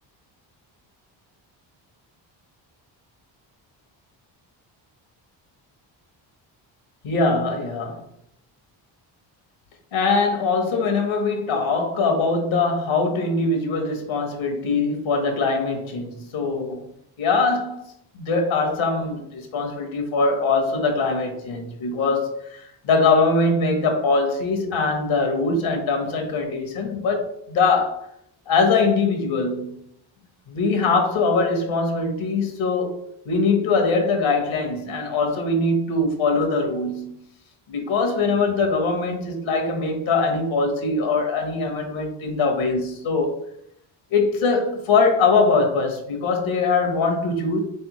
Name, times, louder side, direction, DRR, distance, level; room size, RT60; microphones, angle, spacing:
voice 1, 7.0-8.0 9.9-16.9 17.2-28.1 28.5-29.9 30.5-33.0 33.2-37.2 37.7-43.4 44.1-47.6, left 3 dB, 80° left, 1.2 m, -22 dB
3.8 x 3.4 x 3.0 m
supercardioid pair, 65°, 48 cm